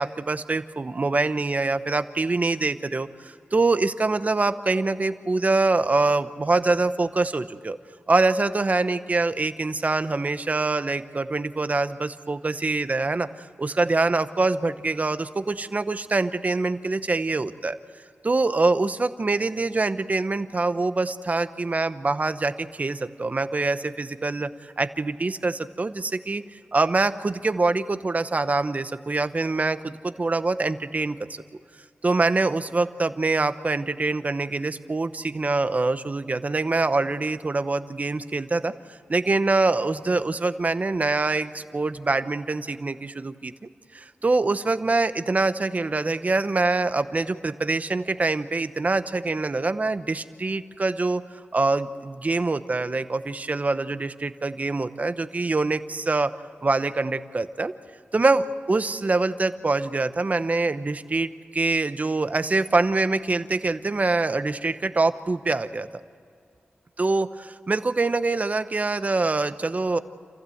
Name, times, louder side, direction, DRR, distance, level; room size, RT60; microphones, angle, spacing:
voice 1, 0.0-7.8 8.1-13.3 13.6-17.8 18.2-26.4 26.7-31.4 32.0-38.7 39.1-51.2 51.5-56.3 56.6-57.7 58.1-65.9 67.0-70.0, right 3 dB, 40° right, 11 dB, 0.9 m, -24 dB
28.0 x 15.5 x 7.9 m, 2.3 s
wide cardioid pair, 90°, 4 cm